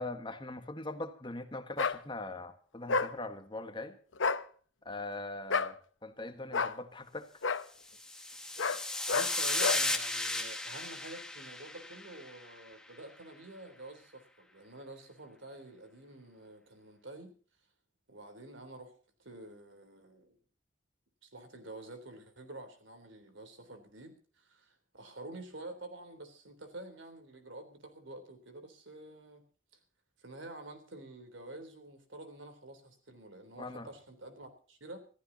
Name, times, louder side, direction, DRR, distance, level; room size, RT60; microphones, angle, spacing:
voice 1, 0.0-4.0 4.8-5.8 6.0-7.3 33.6-33.9, left 2 dB, 25° left, 1.5 m, -41 dB
sound 1, 1.8-2.0 2.9-3.1 4.1-4.4 5.5-5.7 6.5-6.8 7.4-7.6 8.6-8.8 9.1-9.3 9.6-9.8, left 4 dB, 80° left, 0.9 m, -30 dB
sound 2, 7.9-12.4, left 2 dB, 5° left, 1.6 m, -35 dB
voice 2, 9.1-17.3 18.1-18.9 19.2-20.4 21.2-29.4 30.2-35.0, right 1 dB, 75° right, 3.5 m, -48 dB
26.5 x 14.5 x 2.8 m
head